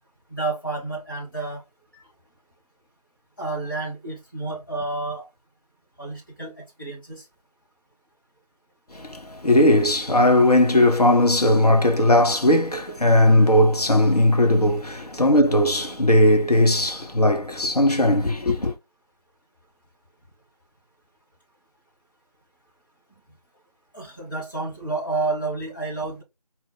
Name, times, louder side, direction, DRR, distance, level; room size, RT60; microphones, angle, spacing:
voice 1, 0.3-1.6 3.4-5.3 6.0-7.2 23.9-26.2, right 3 dB, 30° left, 1.7 m, -30 dB
voice 2, 8.9-18.7, left 1 dB, 70° left, 0.9 m, -18 dB
4.4 x 2.1 x 3.9 m
figure-of-eight pair, 175°, 20 cm